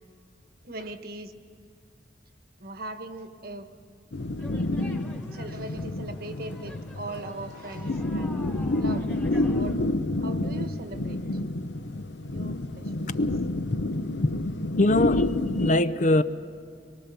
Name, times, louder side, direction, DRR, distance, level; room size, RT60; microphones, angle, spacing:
voice 1, 0.6-1.3 2.6-3.7 5.3-8.5 8.8-9.1 9.6-9.8 10.2-11.2 12.3-13.3, right 2 dB, 55° right, 1.2 m, -39 dB
sound 1, 4.1-15.7, left 2 dB, 75° left, 0.8 m, -29 dB
sound 2, 4.4-9.8, left 1 dB, 10° left, 1.5 m, -48 dB
voice 2, 14.8-15.3 15.6-16.2, left 2 dB, 45° left, 0.5 m, -21 dB
23.5 x 22.5 x 6.9 m
head